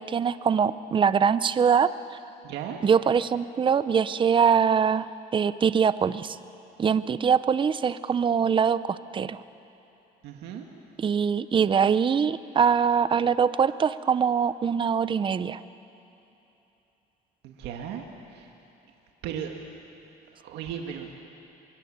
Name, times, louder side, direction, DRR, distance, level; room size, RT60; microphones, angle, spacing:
voice 1, 0.0-1.9 2.8-6.4 6.8-9.4 11.0-15.6, right 7 dB, 30° right, 14 dB, 0.6 m, -23 dB
voice 2, 2.4-2.8 10.2-10.7 17.4-18.0 18.3-18.5 19.2-19.5 20.3-21.2, right 9 dB, 85° right, 2 dB, 1.9 m, -36 dB
24.0 x 22.0 x 8.7 m, 2.9 s
cardioid pair, 110°, 17 cm